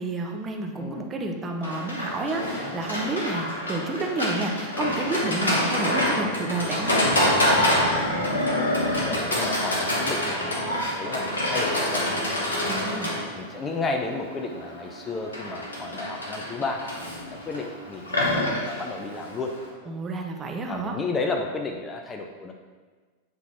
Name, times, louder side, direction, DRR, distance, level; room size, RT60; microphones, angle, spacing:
voice 1, 0.0-7.0 12.7-13.1 19.9-21.0, right 2 dB, 20° right, 2 dB, 0.8 m, -30 dB
voice 2, 0.8-1.1 8.1-8.3 8.9-12.8 13.3-19.5 20.7-22.5, left 3 dB, 20° left, 3 dB, 0.6 m, -33 dB
Livestock farm animals working animals, 1.6-19.7, left 1 dB, 70° left, 1.5 m, -26 dB
8.2 x 3.8 x 4.5 m, 1.4 s
figure-of-eight pair, 90°, 0 cm